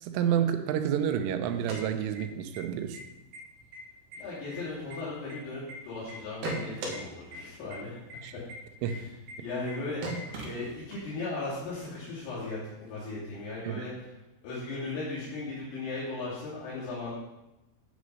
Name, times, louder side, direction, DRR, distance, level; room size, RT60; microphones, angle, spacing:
voice 1, 0.0-3.0 8.2-8.3 8.8-8.9 13.6-13.8, right 9 dB, 90° right, 8 dB, 3.3 m, -29 dB
sound 1, 1.5-2.6 2.9-3.0 3.3-3.8 4.1-5.7 6.1-7.0 7.3-7.4 7.7-7.8 8.1-8.2 8.5-8.6 8.9-9.0 9.3-9.4 9.7-9.8 10.0-11.1, right 2 dB, 65° right, 1.6 m, -38 dB
voice 2, 4.2-8.5 8.8-9.1 9.4-14.1 14.4-17.1, left 3 dB, 85° left, -9 dB, 5.3 m, -37 dB
9.9 x 6.3 x 5.4 m, 0.96 s
omnidirectional pair, 5.6 m